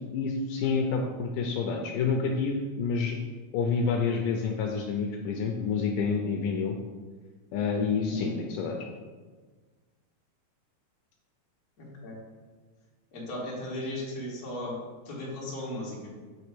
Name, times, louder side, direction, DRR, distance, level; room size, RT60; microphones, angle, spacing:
voice 1, 0.1-3.2 3.5-6.8 7.5-8.8, left 5 dB, 90° left, 2 dB, 1.8 m, -28 dB
voice 2, 11.8-12.2 13.1-14.8 15.1-16.1, left 1 dB, 35° left, -6 dB, 1.6 m, -36 dB
8.3 x 3.3 x 6.0 m, 1.4 s
omnidirectional pair, 4.3 m